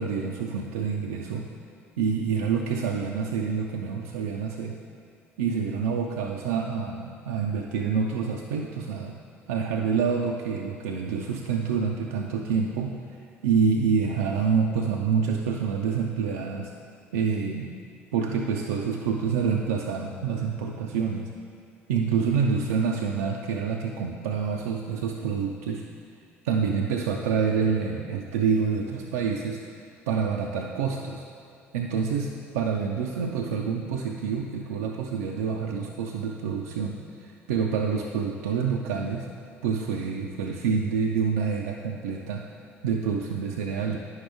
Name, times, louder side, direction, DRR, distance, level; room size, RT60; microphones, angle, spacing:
voice 1, 0.0-1.5 2.0-4.8 5.4-9.2 9.5-13.0 13.4-16.7 17.1-17.7 18.1-21.3 21.9-25.8 26.4-29.6 30.1-31.2 31.7-39.3 39.6-42.4 42.8-44.0, right 6 dB, 75° right, 0 dB, 0.4 m, -27 dB
9.4 x 6.3 x 3.5 m, 2.3 s
figure-of-eight pair, 55°, 7 cm